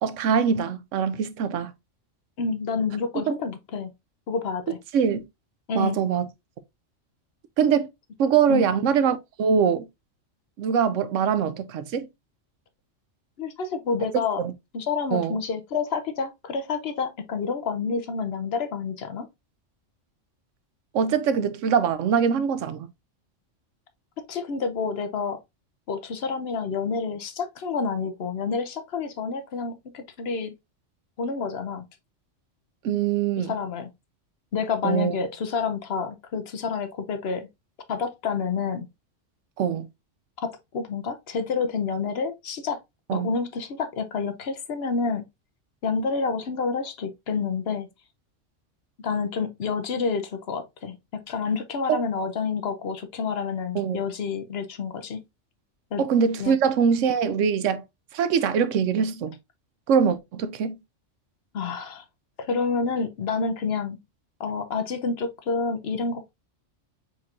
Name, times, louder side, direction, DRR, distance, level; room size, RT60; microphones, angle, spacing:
voice 1, 0.0-1.7 3.3-3.4 4.9-5.2 5.8-6.2 7.6-7.9 8.2-9.9 10.6-12.1 14.4-14.5 15.1-15.4 20.9-22.9 32.8-33.5 34.8-35.1 39.6-39.9 43.1-43.3 51.9-52.0 53.7-54.0 56.0-57.8 58.1-59.3 59.9-60.8, right 7 dB, 85° right, 1.0 m, -23 dB
voice 2, 2.4-3.9 4.3-4.8 5.7-6.0 8.5-8.7 13.4-14.4 14.7-19.3 24.3-25.4 25.9-30.5 31.2-31.9 33.4-33.9 34.5-37.5 37.9-38.9 40.4-42.8 43.1-45.2 45.8-47.9 49.0-55.2 55.9-56.0 56.4-56.6 61.5-62.0 62.5-64.0 64.4-66.3, left 5 dB, 60° left, 0.9 m, -28 dB
4.3 x 4.3 x 2.4 m
omnidirectional pair, 1.3 m